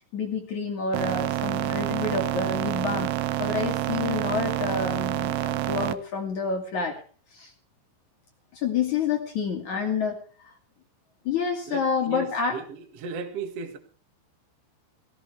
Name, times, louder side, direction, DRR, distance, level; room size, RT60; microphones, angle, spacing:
voice 1, 0.1-3.1 3.4-7.0 7.3-7.5 8.5-10.5 11.2-12.6, left 5 dB, 50° left, 2.7 m, -28 dB
sound 1, 0.9-5.9, right 15 dB, 75° right, 2.4 m, -28 dB
voice 2, 11.7-13.8, right 4 dB, 50° right, 2.0 m, -36 dB
18.0 x 16.5 x 3.4 m
omnidirectional pair, 5.4 m